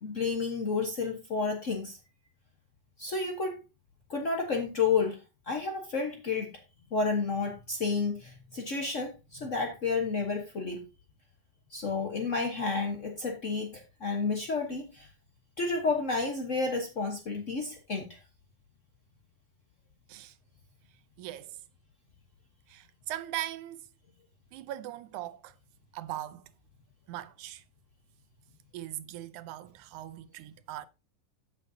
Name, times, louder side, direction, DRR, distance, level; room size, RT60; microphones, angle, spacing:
voice 1, 0.0-2.0 3.0-3.6 4.1-5.2 5.5-6.5 6.9-10.8 11.7-15.1 15.6-18.2, left 4 dB, 65° left, 0.7 m, -31 dB
voice 2, 21.2-21.6 22.7-23.8 24.5-25.6 25.9-26.5 27.1-27.6 28.7-30.9, right 14 dB, 85° right, 2.2 m, -40 dB
13.5 x 6.7 x 2.7 m
omnidirectional pair, 3.4 m